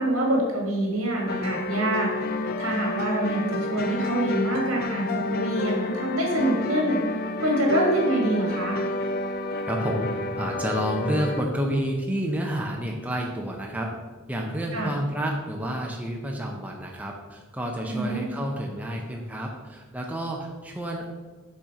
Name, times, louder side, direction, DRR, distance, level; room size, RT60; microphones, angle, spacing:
voice 1, 0.0-2.1 2.6-7.0 7.4-8.8 14.7-14.9 17.9-18.2, right 1 dB, 90° right, -1 dB, 1.8 m, -25 dB
sound 1, 1.3-11.4, left 2 dB, 45° left, 0.4 m, -30 dB
voice 2, 9.7-10.1 10.4-13.9 14.3-21.2, equal, 5° right, 0 dB, 0.6 m, -29 dB
6.0 x 4.3 x 4.8 m, 1.3 s
head